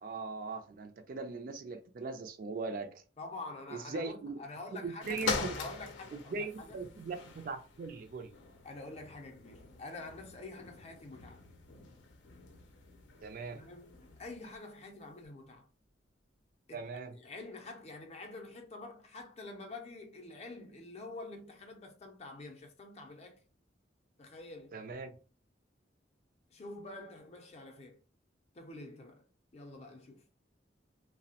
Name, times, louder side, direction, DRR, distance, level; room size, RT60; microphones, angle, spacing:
voice 1, 0.0-3.0 3.7-4.4 4.7-5.5 6.1-8.3 13.2-13.6 16.7-17.2 24.7-25.1, right 4 dB, 50° right, 0.3 m, -40 dB
voice 2, 3.2-6.8 8.6-11.4 13.5-15.7 16.7-16.9 17.1-23.4 24.2-24.8 26.5-28.0 28.5-29.2 29.5-30.2, left 2 dB, 35° left, 0.5 m, -47 dB
sound 1, 5.0-14.5 15.2-15.3, left 4 dB, 85° left, 0.5 m, -43 dB
2.7 x 2.0 x 2.8 m
head